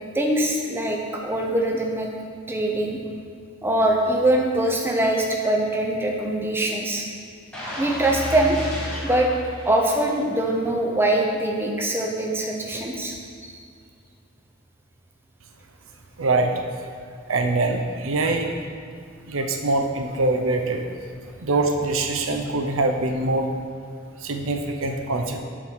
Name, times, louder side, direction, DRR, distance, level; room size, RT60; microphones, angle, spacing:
voice 1, 0.1-2.1 2.5-3.0 3.6-7.1 7.8-8.6 9.0-9.3 9.6-13.2 13.4-13.6, right 1 dB, 10° right, 0 dB, 0.6 m, -23 dB
sound 1, 7.5-10.5 10.9-11.0, equal, 5° left, 1.3 m, -32 dB
voice 2, 16.2-16.5 17.3-18.5 19.3-20.8 21.4-23.5 24.2-25.4, right 2 dB, 75° right, 4 dB, 0.6 m, -23 dB
7.0 x 3.8 x 6.4 m, 2.2 s
head